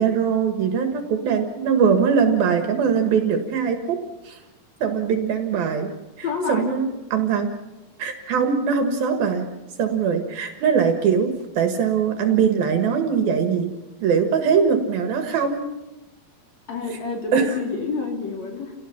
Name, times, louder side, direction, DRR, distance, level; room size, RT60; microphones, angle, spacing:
voice 1, 0.0-4.0 4.2-4.4 4.8-5.9 6.2-7.5 8.0-9.5 9.8-13.7 14.0-15.6 17.3-17.6, right 6 dB, 65° right, 5 dB, 3.2 m, -21 dB
voice 2, 6.2-6.8 16.7-18.7, left 4 dB, 45° left, 1 dB, 4.3 m, -28 dB
29.5 x 17.5 x 5.8 m, 1.0 s
omnidirectional pair, 4.7 m